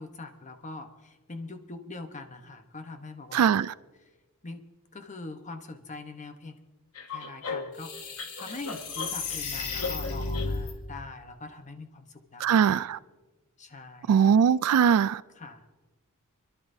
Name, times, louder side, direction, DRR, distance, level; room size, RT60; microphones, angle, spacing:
voice 1, 0.0-3.6 4.4-4.6 4.9-6.6 7.1-7.9 8.4-12.9 13.6-14.1 15.4-15.7, left 3 dB, 35° left, 1.0 m, -42 dB
voice 2, 3.3-3.7 12.4-13.0 14.1-15.2, right 7 dB, 75° right, 0.3 m, -21 dB
sound 1, 7.0-10.7, left 4 dB, 80° left, 1.5 m, -33 dB
29.0 x 11.0 x 2.7 m
head